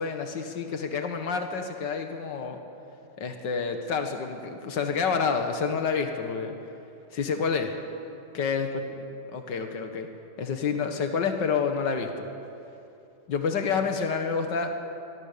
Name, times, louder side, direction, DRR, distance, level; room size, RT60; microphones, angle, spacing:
voice 1, 0.0-2.6 3.2-6.6 7.1-7.8 8.3-8.7 9.3-10.1 10.4-12.3 13.3-14.7, left 5 dB, 80° left, 5 dB, 2.2 m, -28 dB
25.5 x 23.0 x 6.9 m, 2.8 s
omnidirectional pair, 1.9 m